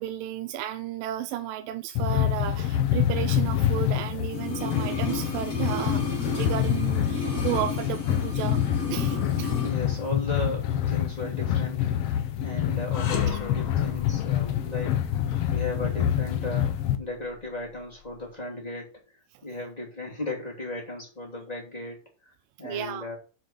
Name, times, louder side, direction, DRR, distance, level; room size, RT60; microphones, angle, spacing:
voice 1, 0.0-8.6 8.9-9.6 15.4-15.5 22.6-23.1, right 12 dB, 85° right, 2.3 m, -33 dB
sound 1, 1.9-16.9, left 11 dB, 80° left, 1.3 m, -26 dB
sound 2, 4.3-9.8 10.0-10.1, left 2 dB, 30° left, 2.0 m, -32 dB
voice 2, 9.6-23.2, left 2 dB, 10° left, 2.5 m, -36 dB
sound 3, 12.9-18.2, left 7 dB, 60° left, 2.3 m, -39 dB
7.8 x 5.2 x 5.7 m
omnidirectional pair, 3.9 m